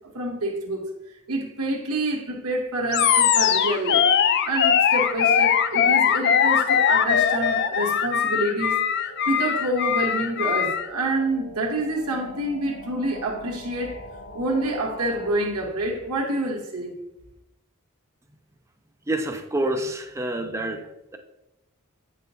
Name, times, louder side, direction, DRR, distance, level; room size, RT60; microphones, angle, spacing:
voice 1, 0.1-0.9 1.3-4.1 4.5-8.8 9.3-14.0 14.3-16.9, right 1 dB, 90° right, 1.3 m, -27 dB
Animal, 2.9-10.9, left 8 dB, 50° left, 0.4 m, -21 dB
sound 1, 8.6-15.3, equal, 65° left, 1.2 m, -43 dB
voice 2, 19.1-21.2, right 1 dB, 15° right, 0.5 m, -28 dB
8.0 x 5.6 x 2.7 m
head